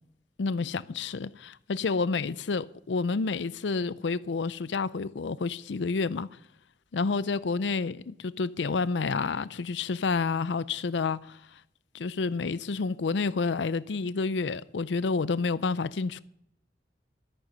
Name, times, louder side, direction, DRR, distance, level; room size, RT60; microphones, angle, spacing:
voice 1, 0.4-6.3 6.9-11.4 11.9-16.2, left 4 dB, 85° left, 0.5 m, -29 dB
13.5 x 8.9 x 5.5 m
head